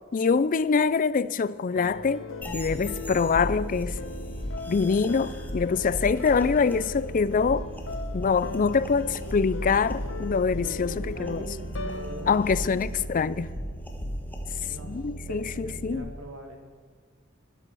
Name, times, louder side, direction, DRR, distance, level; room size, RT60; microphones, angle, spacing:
voice 1, 0.1-2.3 2.5-4.0 4.7-7.7 8.1-11.5 12.3-13.5 14.9-16.1, left 5 dB, 45° left, 0.4 m, -25 dB
sound 1, 1.8-13.9, left 2 dB, 70° left, 1.0 m, -40 dB
sound 2, 2.4-15.9, equal, 10° left, 1.6 m, -36 dB
voice 2, 10.5-12.6 14.7-15.0 15.3-16.6, right 1 dB, 85° right, 2.1 m, -43 dB
11.5 x 10.5 x 7.6 m
head